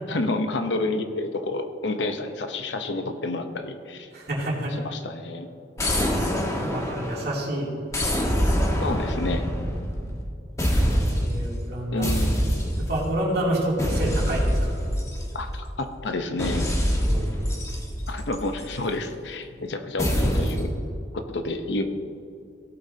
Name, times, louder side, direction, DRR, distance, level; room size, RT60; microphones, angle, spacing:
voice 1, 0.1-4.1 4.8-5.5 8.8-9.4 11.9-12.6 15.3-16.7 18.1-20.8 21.3-21.8, left 2 dB, 75° left, 7 dB, 0.8 m, -29 dB
voice 2, 4.1-4.8 6.1-6.2 6.6-7.7 11.2-12.1 12.9-14.7 17.0-17.5, right 1 dB, 60° right, -4 dB, 2.8 m, -28 dB
sound 1, 5.8-7.4 7.9-10.3 10.6-11.4 12.0-13.1 13.8-15.7 16.4-18.8 20.0-20.7, equal, 15° left, 1.3 m, -25 dB
17.0 x 8.4 x 2.8 m, 2.6 s
head